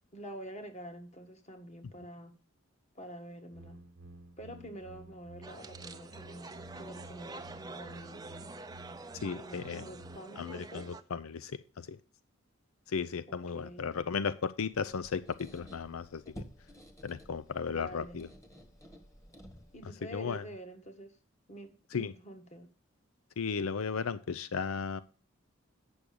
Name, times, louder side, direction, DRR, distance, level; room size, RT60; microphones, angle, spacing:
voice 1, 0.1-2.4 2.9-3.8 4.4-8.5 9.4-10.9 13.3-13.9 17.7-18.2 19.7-21.2 21.5-22.7, equal, 35° left, 6 dB, 1.6 m, -47 dB
sound 1, 3.5-10.2, right 2 dB, 65° right, 1.1 m, -52 dB
sound 2, 5.4-11.0, right 3 dB, 20° right, 0.6 m, -47 dB
voice 2, 9.1-9.9 10.4-12.0 12.9-16.5 17.0-18.3 20.1-20.4 21.9-22.1 23.4-25.0, left 5 dB, 90° left, 15 dB, 0.5 m, -35 dB
Squeak, 14.7-19.9, equal, 15° left, 1.5 m, -52 dB
8.6 x 6.3 x 6.9 m, 0.38 s
head